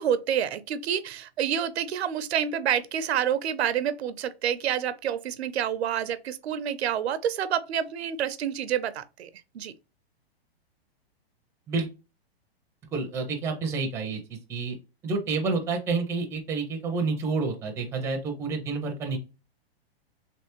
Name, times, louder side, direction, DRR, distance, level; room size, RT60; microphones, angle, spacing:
voice 1, 0.0-9.3 9.5-9.7, right 9 dB, 80° right, 0.6 m, -28 dB
voice 2, 12.9-14.2 14.5-14.8 15.0-19.2, right 4 dB, 10° right, 0.5 m, -29 dB
3.4 x 3.1 x 2.9 m
hypercardioid pair, 150°, 31 cm